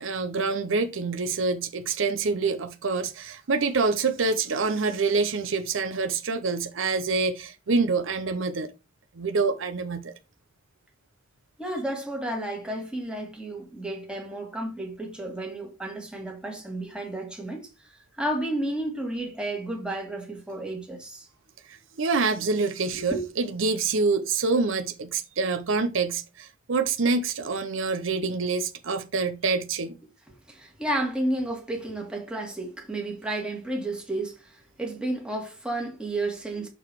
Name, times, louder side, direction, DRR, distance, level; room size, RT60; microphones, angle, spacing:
voice 1, 0.0-8.7 9.1-10.1 21.7-30.0, right 4 dB, 70° right, 0.7 m, -26 dB
voice 2, 11.6-21.3 22.9-23.3 30.5-36.7, right 1 dB, 5° right, 1.6 m, -32 dB
6.8 x 3.9 x 4.7 m
head